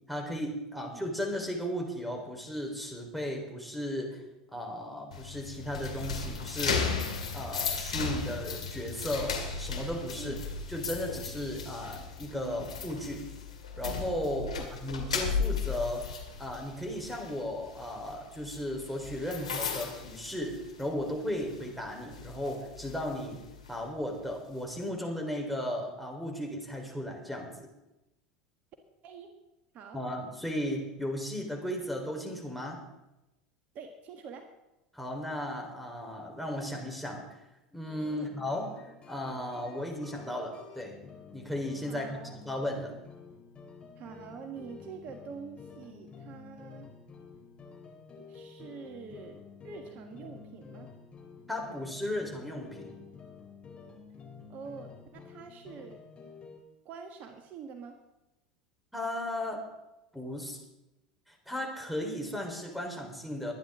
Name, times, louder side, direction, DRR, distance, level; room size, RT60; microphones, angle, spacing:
voice 1, 0.1-4.2 4.5-6.9 7.3-10.4 10.7-13.3 13.8-16.1 16.4-23.4 23.7-27.7 29.9-32.8 34.9-37.4 37.7-38.7 39.1-41.0 41.3-42.2 42.4-43.0 51.5-53.0 58.9-59.6 60.1-60.6 61.3-63.5, left 1 dB, ahead, 3 dB, 4.0 m, -35 dB
sound 1, 5.1-21.0 21.4-21.6 22.1-23.8, left 5 dB, 85° left, 2.1 m, -36 dB
voice 2, 33.7-34.5 38.1-38.3 41.9-42.4 44.0-46.9 48.2-50.9 54.5-56.0 56.8-58.0, right 6 dB, 50° right, 5 dB, 1.6 m, -45 dB
sound 2, 37.9-56.6, left 5 dB, 30° left, 3.6 m, -50 dB
22.0 x 10.5 x 3.7 m, 0.94 s
hypercardioid pair, 80°, 4 cm